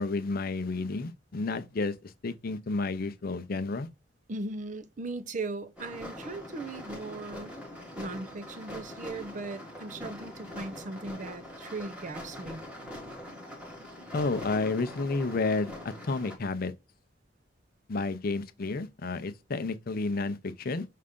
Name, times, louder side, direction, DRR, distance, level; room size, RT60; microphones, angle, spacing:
voice 1, 0.0-1.9 2.2-3.9 14.1-16.7 17.9-20.8, left 3 dB, 50° left, 0.5 m, -31 dB
voice 2, 4.3-7.6 8.0-12.6, right 2 dB, 40° right, 0.6 m, -38 dB
sound 1, 5.8-16.4, left 1 dB, 5° right, 1.3 m, -43 dB
5.5 x 2.5 x 3.5 m
head